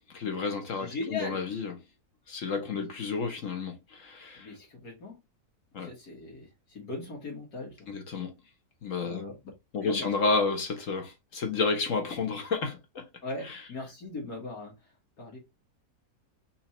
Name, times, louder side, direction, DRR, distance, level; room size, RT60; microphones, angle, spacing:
voice 1, 0.2-1.7 2.3-4.5 5.7-5.9 7.9-8.3 8.8-9.2 9.7-13.0, left 4 dB, 60° left, 1.3 m, -31 dB
voice 2, 0.8-1.4 2.8-2.9 4.4-5.2 5.7-7.9 9.0-9.4 9.8-10.1 10.4-10.5 13.2-15.4, left 2 dB, 80° left, 2.0 m, -39 dB
4.4 x 2.8 x 4.3 m
omnidirectional pair, 1.6 m